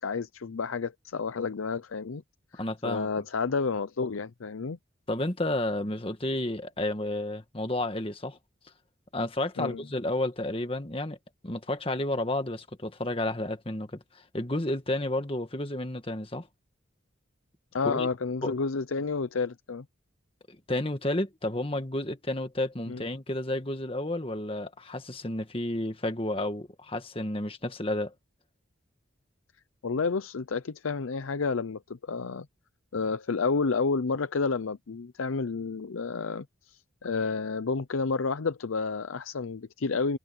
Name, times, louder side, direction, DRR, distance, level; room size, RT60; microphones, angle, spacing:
voice 1, 0.0-2.2 2.5-4.8 9.6-9.8 17.7-19.8 22.9-23.0 29.8-32.5 32.9-40.2, left 4 dB, 85° left, 0.6 m, -30 dB
voice 2, 2.5-3.1 5.1-8.4 9.1-11.2 11.4-14.0 14.3-16.5 17.8-18.1 18.4-18.5 20.7-28.1, left 1 dB, 25° left, 1.7 m, -31 dB
head